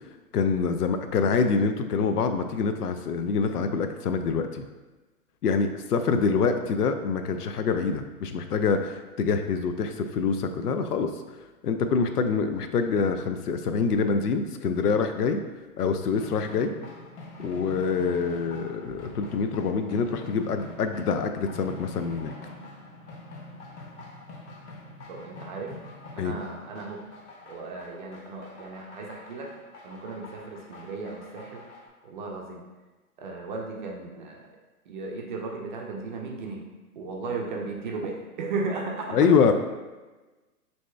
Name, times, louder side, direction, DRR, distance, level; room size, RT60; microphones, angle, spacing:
voice 1, 0.3-4.6 5.4-11.1 11.6-15.4 15.8-16.7 17.4-22.3 26.2-26.3 39.1-39.5, left 5 dB, 90° left, 8 dB, 0.6 m, -25 dB
sound 1, 16.1-31.9, left 2 dB, 50° left, 1.0 m, -45 dB
voice 2, 25.1-25.7 26.1-27.0 27.5-29.5 29.8-31.6 32.0-32.6 33.2-34.4 34.9-36.6 37.0-39.3, right 3 dB, 35° right, -1 dB, 0.5 m, -35 dB
6.2 x 2.8 x 2.3 m, 1.2 s
hypercardioid pair, 140°, 45 cm